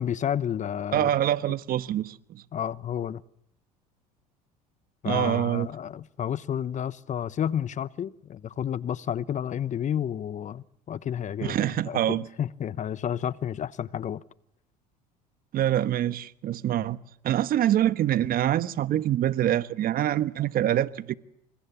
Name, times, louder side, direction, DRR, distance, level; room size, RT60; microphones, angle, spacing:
voice 1, 0.0-1.1 2.5-3.2 5.0-14.2, left 9 dB, 40° left, 1.0 m, -31 dB
voice 2, 0.9-2.4 5.0-5.7 11.4-12.3 15.5-17.0 17.2-21.1, right 12 dB, 50° right, 1.2 m, -25 dB
29.5 x 26.5 x 7.2 m
hypercardioid pair, 75°, 20 cm